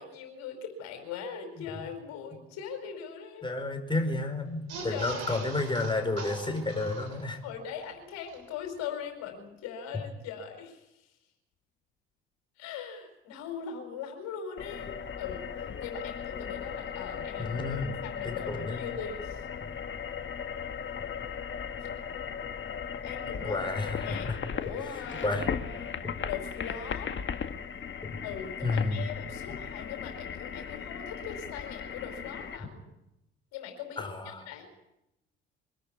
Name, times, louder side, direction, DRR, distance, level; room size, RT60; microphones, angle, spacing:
voice 1, 0.0-3.5 4.9-5.5 7.4-11.1 12.6-19.4 23.0-25.9 26.3-27.1 28.2-32.8 33.5-34.0 34.5-34.7, left 7 dB, 65° left, 5 dB, 4.7 m, -41 dB
voice 2, 3.4-7.4 17.4-17.9 18.2-18.8 19.6-19.7 23.4-24.4 25.2-25.5 26.0-26.1 28.0-28.2 28.6-29.1 34.0-34.5, left 2 dB, 15° left, 5 dB, 5.0 m, -31 dB
sound 1, 4.6-7.5 7.9-8.0 8.2-8.4, right 4 dB, 60° right, 6.9 m, -41 dB
sound 2, 14.6-32.6, left 7 dB, 40° left, 1.8 m, -37 dB
24.0 x 13.5 x 9.9 m, 0.89 s
hypercardioid pair, 50°, 29 cm